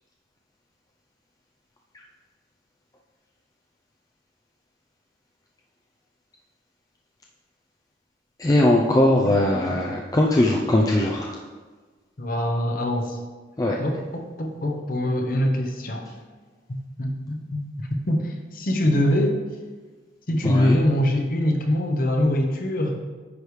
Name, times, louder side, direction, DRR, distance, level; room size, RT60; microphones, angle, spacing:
voice 1, 8.4-11.4 13.6-13.8 20.4-20.8, left 1 dB, 20° left, 0 dB, 0.4 m, -20 dB
voice 2, 9.2-9.6 12.2-13.2 13.8-16.1 17.0-19.4 20.3-23.0, left 1 dB, 45° left, 3 dB, 0.8 m, -24 dB
9.8 x 4.9 x 3.2 m, 1.4 s
head